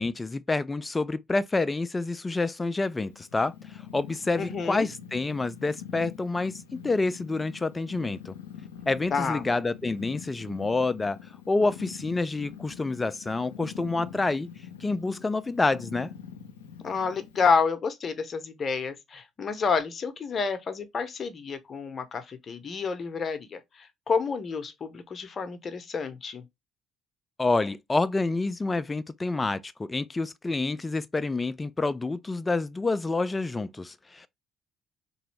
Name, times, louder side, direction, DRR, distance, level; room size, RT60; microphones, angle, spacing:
voice 1, 0.0-3.5 3.9-8.3 8.9-11.2 11.5-14.5 14.8-16.1 27.4-34.3, left 3 dB, 25° left, 0.3 m, -28 dB
Purr, 2.8-17.6, left 8 dB, 90° left, 0.5 m, -44 dB
voice 2, 4.4-4.8 9.1-9.4 16.8-26.4, left 5 dB, 45° left, 0.7 m, -29 dB
3.0 x 2.7 x 3.1 m
hypercardioid pair, 55°, 0 cm